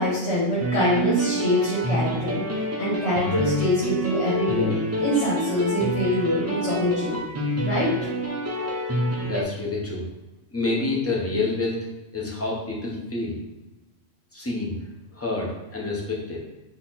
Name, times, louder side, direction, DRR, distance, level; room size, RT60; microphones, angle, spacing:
voice 1, 0.0-2.4 2.8-4.7 5.0-7.2 7.6-7.9, left 1 dB, 60° left, -7 dB, 1.5 m, -24 dB
sound 1, 0.6-9.4, equal, 25° right, 0.3 m, -27 dB
voice 2, 9.2-10.1 10.5-11.8 12.1-13.3 14.3-14.7 15.1-16.4, left 3 dB, 15° left, -4 dB, 0.8 m, -28 dB
4.1 x 2.8 x 4.1 m, 1.0 s
omnidirectional pair, 1.3 m